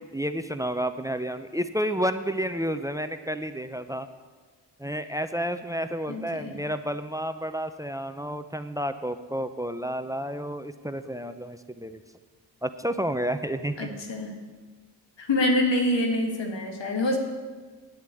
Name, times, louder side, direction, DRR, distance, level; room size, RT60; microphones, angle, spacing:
voice 1, 0.1-4.1 4.8-12.0 12.6-13.9, equal, 10° right, 10 dB, 0.7 m, -30 dB
voice 2, 6.1-6.5 13.8-14.3 15.2-17.2, left 1 dB, 85° left, 2 dB, 1.9 m, -26 dB
9.5 x 8.3 x 8.4 m, 1.4 s
cardioid pair, 50°, 43 cm